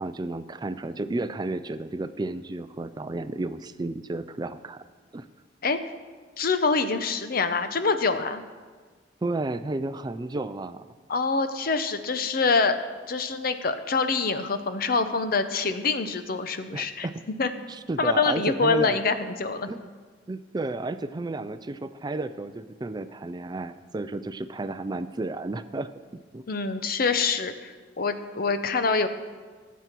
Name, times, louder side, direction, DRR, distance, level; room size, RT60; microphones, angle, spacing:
voice 1, 0.0-4.8 5.1-5.3 9.2-10.8 16.7-17.1 17.7-19.0 19.7-19.9 20.3-25.9 26.3-26.4, right 2 dB, 25° right, 12 dB, 0.4 m, -32 dB
voice 2, 6.4-8.4 11.1-12.8 13.1-17.1 17.4-17.5 18.0-19.7 26.5-29.1, left 4 dB, 50° left, 10 dB, 0.8 m, -25 dB
18.5 x 8.2 x 4.6 m, 1.5 s
head